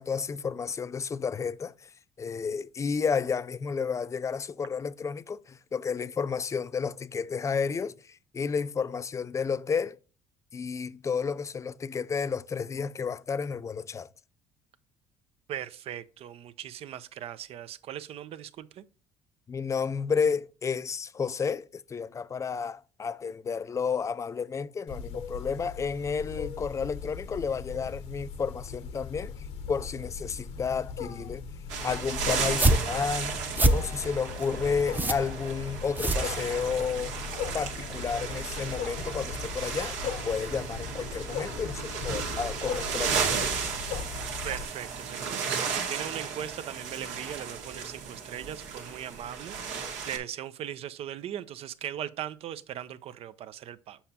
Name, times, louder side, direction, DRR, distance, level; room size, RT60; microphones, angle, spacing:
voice 1, 0.0-1.9 2.2-10.0 10.5-14.1 19.5-29.3 29.7-31.4 31.8-33.3 33.7-37.2 37.5-43.7, left 6 dB, 25° left, 0.4 m, -31 dB
voice 2, 15.5-18.8 44.4-54.0, right 10 dB, 55° right, 0.6 m, -39 dB
Wild animals, 24.9-44.6, left 6 dB, 70° left, 1.0 m, -39 dB
sound 1, 31.7-50.2, right 6 dB, 85° right, 1.8 m, -34 dB
sound 2, 32.4-36.9, right 2 dB, 15° right, 0.7 m, -27 dB
7.2 x 5.7 x 2.8 m
supercardioid pair, 95°, 12 cm